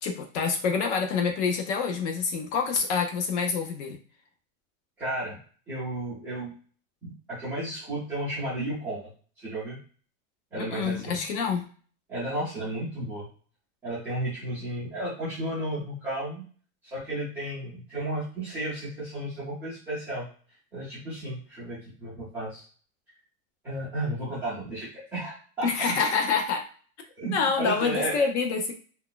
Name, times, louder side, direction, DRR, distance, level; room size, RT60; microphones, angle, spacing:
voice 1, 0.0-4.0 10.6-11.7 25.6-26.6 27.3-28.7, left 5 dB, 55° left, 4 dB, 0.9 m, -27 dB
voice 2, 5.0-5.4 5.7-6.5 7.0-9.1 9.4-9.8 10.5-11.2 12.1-13.3 13.8-16.4 16.8-20.3 20.7-22.6 23.6-26.0 27.2-28.3, right 1 dB, 5° right, -12 dB, 0.3 m, -33 dB
2.8 x 2.3 x 3.8 m, 0.42 s
supercardioid pair, 180°, 41 cm